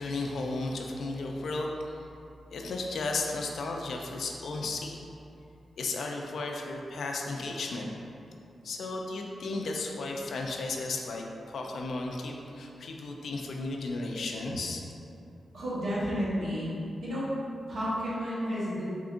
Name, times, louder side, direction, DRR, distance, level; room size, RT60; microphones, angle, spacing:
voice 1, 0.0-2.0 2.5-5.0 5.8-7.9 8.6-14.8, left 3 dB, 80° left, 1 dB, 0.4 m, -34 dB
voice 2, 15.5-16.7 17.0-17.3 17.7-18.8, equal, 75° right, -9 dB, 1.1 m, -31 dB
3.6 x 3.5 x 2.5 m, 2.6 s
cardioid pair, 70°, 0 cm